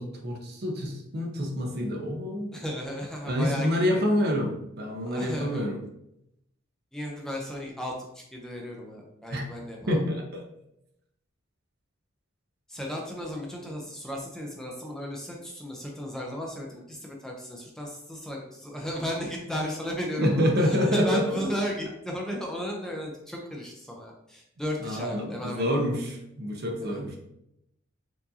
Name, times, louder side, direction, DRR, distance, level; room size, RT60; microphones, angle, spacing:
voice 1, 0.0-2.5 3.3-5.8 9.3-9.4 9.9-10.4 20.2-21.2 24.8-27.2, equal, 55° right, 2 dB, 0.7 m, -27 dB
voice 2, 2.5-3.8 5.1-5.7 6.9-10.0 12.7-25.8 26.8-27.0, equal, 5° left, -1 dB, 0.5 m, -35 dB
4.6 x 2.6 x 2.7 m, 0.82 s
head